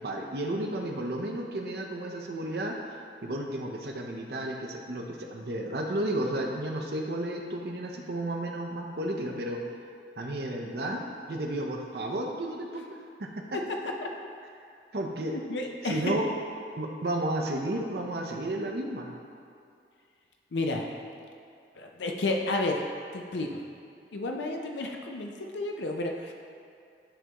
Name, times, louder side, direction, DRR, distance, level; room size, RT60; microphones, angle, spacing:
voice 1, 0.0-2.7 3.2-9.6 10.2-11.0 11.3-12.8 13.2-13.4 14.9-15.3 15.8-16.3 16.8-19.1, right 1 dB, 65° right, 1 dB, 0.7 m, -32 dB
voice 2, 13.5-14.1 15.3-16.1 20.5-20.9 21.8-22.8 23.1-23.6 24.1-26.3, left 2 dB, 85° left, 2 dB, 0.5 m, -31 dB
10.0 x 3.5 x 3.0 m, 2.4 s
head